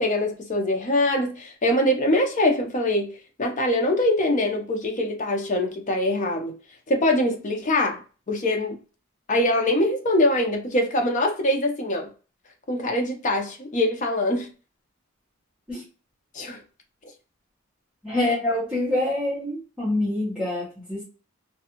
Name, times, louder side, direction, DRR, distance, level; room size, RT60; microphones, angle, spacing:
voice 1, 0.0-3.1 3.4-6.5 6.9-8.0 8.3-8.8 9.3-12.1 12.7-14.5 16.3-16.6, left 1 dB, 40° left, 0.6 m, -23 dB
voice 2, 18.0-21.0, left 1 dB, 5° right, 0.8 m, -26 dB
2.5 x 2.3 x 2.8 m
head